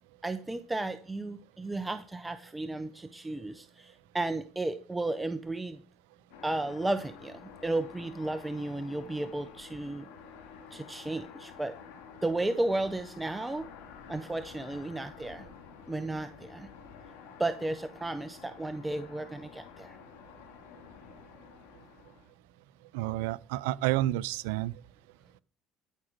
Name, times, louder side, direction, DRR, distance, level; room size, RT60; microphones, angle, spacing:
voice 1, 0.2-5.8 6.4-10.1 10.7-11.8 12.2-13.7 14.1-15.5 15.9-16.7 17.4-20.0, right 2 dB, 10° right, 0.9 m, -33 dB
sound 1, 6.3-22.3, left 7 dB, 90° left, 2.3 m, -50 dB
voice 2, 22.9-24.7, right 16 dB, 85° right, 0.4 m, -30 dB
13.0 x 6.1 x 5.2 m
supercardioid pair, 80°, 0 cm